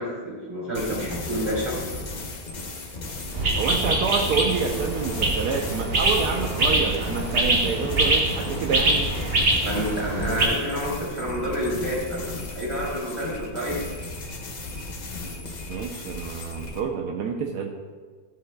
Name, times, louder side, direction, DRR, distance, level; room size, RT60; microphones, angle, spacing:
voice 1, 0.0-1.8 9.6-13.8, equal, 15° right, -5 dB, 2.7 m, -29 dB
sound 1, 0.7-16.8, left 2 dB, 45° left, 0.6 m, -35 dB
sound 2, 3.3-10.5, right 2 dB, 40° right, 1.5 m, -24 dB
voice 2, 3.6-9.1 15.7-17.7, right 6 dB, 80° right, 2 dB, 1.3 m, -28 dB
12.5 x 7.9 x 2.2 m, 1.5 s
omnidirectional pair, 1.7 m